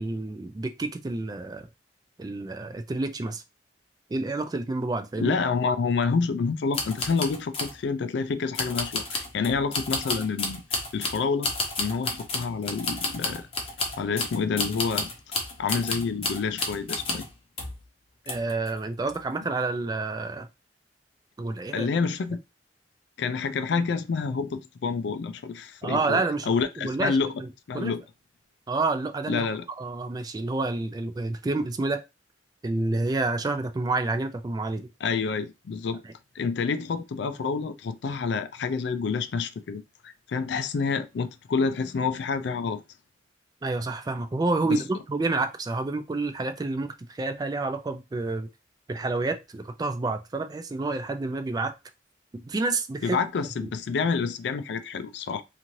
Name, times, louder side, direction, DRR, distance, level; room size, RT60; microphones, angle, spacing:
voice 1, 0.0-1.7 2.2-3.4 4.1-5.3 18.3-20.5 21.4-21.9 25.8-27.5 27.7-27.9 28.7-32.0 32.6-34.9 43.6-48.5 48.9-51.7 52.3-53.2 53.6-53.7, right 3 dB, 20° right, 0.3 m, -29 dB
voice 2, 5.2-11.5 11.8-13.5 14.0-15.1 15.6-17.3 21.7-22.4 23.2-27.3 27.7-28.0 29.3-29.6 35.0-36.0 36.4-42.8 44.7-44.8 53.0-55.4, left 5 dB, 65° left, 0.4 m, -28 dB
sound 1, 6.7-7.8 8.5-17.3 17.6-17.8 18.3-18.7 19.1-19.2, left 3 dB, 30° left, 0.7 m, -31 dB
2.7 x 2.5 x 3.0 m
head